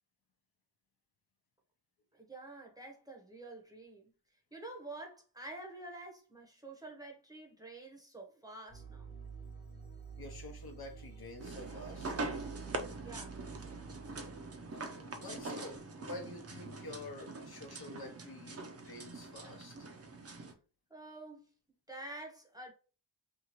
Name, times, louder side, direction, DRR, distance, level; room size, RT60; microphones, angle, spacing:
voice 1, 2.1-4.1 4.5-9.1 13.0-13.4 20.9-21.5 21.9-22.7, right 2 dB, 10° right, 0.8 m, -48 dB
sound 1, 8.7-17.1, right 5 dB, 20° left, 1.1 m, -50 dB
voice 2, 10.2-12.1 14.7-19.9, left 2 dB, 55° left, 0.8 m, -48 dB
sound 2, 11.4-20.5, right 3 dB, 35° right, 0.5 m, -43 dB
2.8 x 2.4 x 2.9 m
wide cardioid pair, 75°, 44 cm